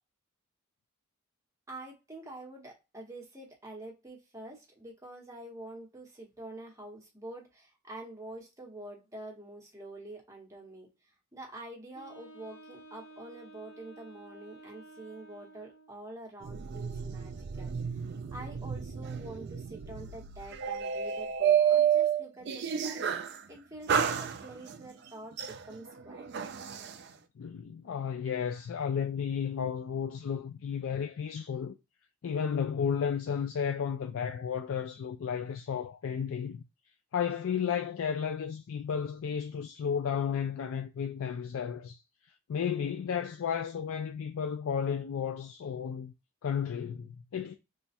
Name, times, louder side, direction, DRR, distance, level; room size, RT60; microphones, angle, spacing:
voice 1, 1.7-10.9 11.3-18.0 18.3-23.0 23.5-26.2, right 1 dB, 15° right, 1.0 m, -46 dB
Wind instrument woodwind instrument, 11.9-16.0, right 2 dB, 85° left, 0.9 m, -52 dB
sound 1, 16.4-23.4 23.9-24.8 25.4-27.0, right 8 dB, 50° right, 0.3 m, -30 dB
voice 2, 27.4-31.7 32.2-36.6 37.1-42.0 42.5-46.1 46.4-47.5, left 7 dB, 70° left, 0.3 m, -33 dB
3.2 x 2.3 x 4.1 m
head